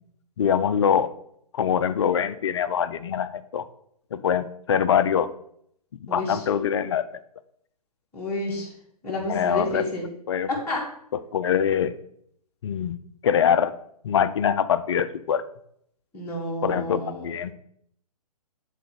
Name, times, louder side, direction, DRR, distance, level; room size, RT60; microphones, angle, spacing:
voice 1, 0.4-1.1 1.5-3.6 4.1-5.3 6.0-7.0 9.3-9.9 10.3-10.5 11.3-11.9 12.6-13.0 13.2-13.8 14.0-15.4 16.6-17.5, left 8 dB, 45° left, 13 dB, 0.4 m, -23 dB
voice 2, 6.1-6.4 8.1-8.7 9.0-10.1 10.5-10.8 16.1-17.3, left 1 dB, 10° left, -6 dB, 1.5 m, -30 dB
7.9 x 4.1 x 4.8 m, 0.70 s
figure-of-eight pair, 125°, 20 cm